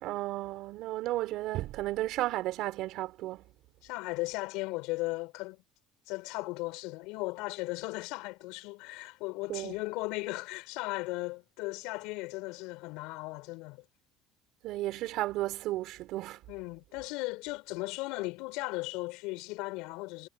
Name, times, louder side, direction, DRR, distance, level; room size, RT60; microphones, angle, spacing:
voice 1, 0.0-3.4 9.5-9.7 14.6-16.4, right 16 dB, 70° right, 4.5 m, -33 dB
voice 2, 3.8-5.6 6.1-13.9 16.5-20.3, left 23 dB, 80° left, 5.2 m, -37 dB
supercardioid pair, 85°, 0 cm